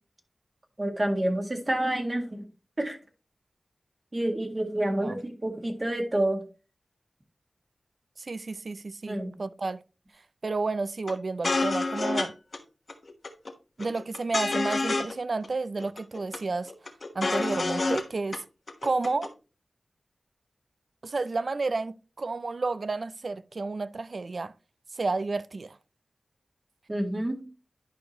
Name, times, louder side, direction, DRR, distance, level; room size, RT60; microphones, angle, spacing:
voice 1, 0.8-2.4 2.8-3.0 4.1-6.4 9.1-9.3 26.9-27.4, right 1 dB, 35° right, 1.8 m, -28 dB
voice 2, 8.2-9.8 10.4-12.4 13.8-16.7 17.1-18.4 18.8-19.3 21.0-24.5 24.9-25.8, right 3 dB, 60° right, 0.4 m, -31 dB
sound 1, 11.1-11.2 11.4-12.3 12.5-12.6 12.9-13.5 13.8-15.2 15.4-15.5 15.8-16.4 16.7-18.0 18.3-18.4 18.7-19.3, left 3 dB, 60° left, 1.1 m, -28 dB
11.0 x 4.8 x 2.9 m
cardioid pair, 55°, 0 cm